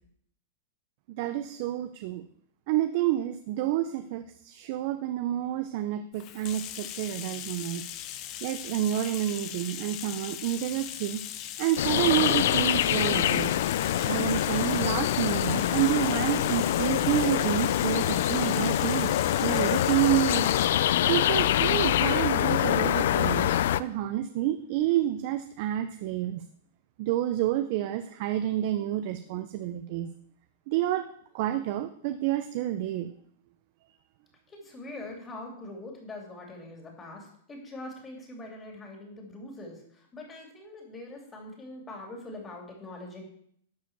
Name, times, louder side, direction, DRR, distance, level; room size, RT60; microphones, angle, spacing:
voice 1, 1.1-2.3 2.7-11.2 11.6-13.6 14.0-20.5 21.1-26.4 27.0-30.1 30.7-31.1 31.3-33.1, right 13 dB, 45° right, 10 dB, 0.6 m, -29 dB
Bathtub (filling or washing), 6.1-20.8, left 11 dB, 35° left, 0.8 m, -39 dB
sound 1, 11.8-23.8, left 12 dB, 65° left, 0.5 m, -25 dB
voice 2, 34.5-43.2, left 2 dB, 15° left, 0 dB, 3.0 m, -43 dB
11.5 x 5.0 x 7.3 m, 0.65 s
supercardioid pair, 150°, 0 cm